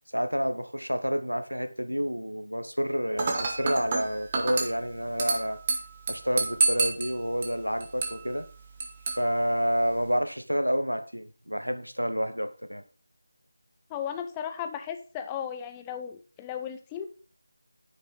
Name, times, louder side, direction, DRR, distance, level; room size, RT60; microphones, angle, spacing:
voice 1, 0.1-5.6 6.1-8.5 9.2-12.8, equal, 90° right, 9 dB, 1.1 m, -29 dB
Dishes pots and pans / Glass, 3.2-10.2, right 3 dB, 20° right, 1.2 m, -31 dB
voice 2, 13.9-17.1, left 8 dB, 10° left, 7 dB, 0.4 m, -35 dB
8.1 x 6.6 x 3.9 m, 0.38 s
figure-of-eight pair, 165°, 0 cm